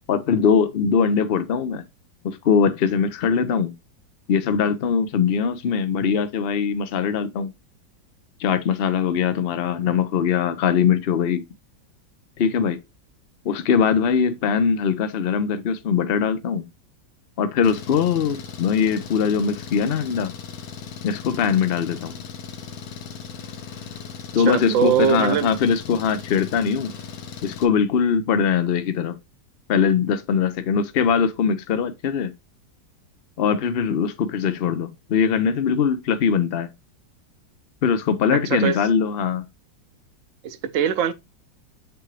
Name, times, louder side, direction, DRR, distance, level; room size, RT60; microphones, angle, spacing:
voice 1, 0.1-1.8 2.2-3.7 4.3-7.5 8.4-11.4 12.4-12.8 13.4-16.7 17.4-20.3 21.0-22.2 24.3-26.9 27.4-29.2 29.7-32.3 33.4-36.7 37.8-39.4, left 6 dB, 85° left, 0.5 m, -21 dB
Engine, 17.6-27.7, left 6 dB, 60° left, 1.2 m, -38 dB
voice 2, 24.4-25.5 38.3-38.8 40.4-41.1, right 8 dB, 60° right, 0.8 m, -22 dB
8.1 x 3.8 x 3.2 m
omnidirectional pair, 2.0 m